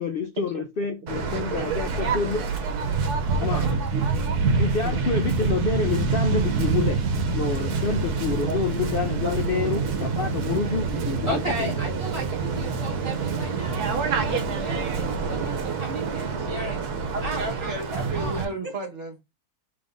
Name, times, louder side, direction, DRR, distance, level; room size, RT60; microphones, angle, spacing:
voice 1, 0.0-2.5 3.4-3.7 4.6-7.0 7.3-11.7, left 5 dB, 70° left, 0.5 m, -28 dB
Waves surf, 1.1-18.5, right 4 dB, 80° right, 1.3 m, -26 dB
voice 2, 1.5-1.8 3.5-4.3 4.8-5.2 8.4-8.6 9.2-9.7 17.1-19.2, right 2 dB, 40° right, 1.4 m, -34 dB
voice 3, 11.3-16.9 17.2-18.7, equal, 20° left, 1.3 m, -35 dB
5.2 x 3.4 x 2.5 m
omnidirectional pair, 1.6 m